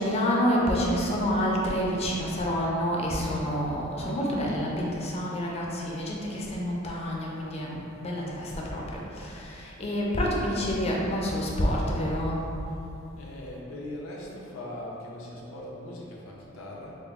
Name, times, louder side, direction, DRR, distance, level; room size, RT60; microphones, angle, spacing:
voice 1, 0.0-12.4, equal, 30° left, -3 dB, 0.5 m, -28 dB
voice 2, 13.2-17.0, left 1 dB, 90° left, -3 dB, 0.6 m, -40 dB
3.7 x 2.0 x 3.4 m, 2.8 s
head